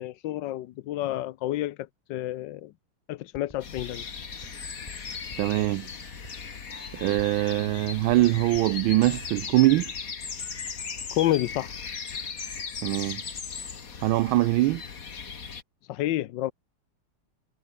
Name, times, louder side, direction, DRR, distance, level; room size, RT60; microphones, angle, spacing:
voice 1, 0.0-1.8 2.1-2.7 3.1-4.0 11.1-11.7 15.9-16.5, left 14 dB, 70° left, 1.2 m, -29 dB
sound 1, 3.3-9.5, left 1 dB, 15° left, 5.3 m, -49 dB
sound 2, 3.6-15.6, left 5 dB, 40° left, 2.2 m, -38 dB
voice 2, 5.4-5.9 7.0-9.9 12.8-13.2 14.0-14.8, right 17 dB, 75° right, 1.3 m, -23 dB
omnidirectional pair, 2.4 m